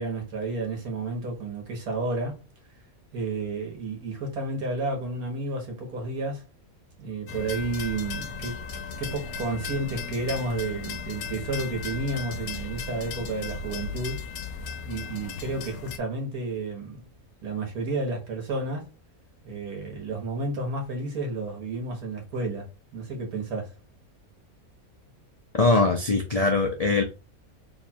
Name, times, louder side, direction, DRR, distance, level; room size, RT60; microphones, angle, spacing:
voice 1, 0.0-2.4 3.1-6.4 7.0-8.6 9.0-14.2 14.8-17.1 17.4-18.9 19.4-23.7, right 2 dB, 90° right, 1.7 m, -31 dB
sound 1, 7.3-16.0, left 5 dB, 80° left, 1.1 m, -36 dB
voice 2, 25.5-27.0, left 3 dB, 60° left, 0.4 m, -22 dB
3.4 x 2.3 x 4.2 m
omnidirectional pair, 1.5 m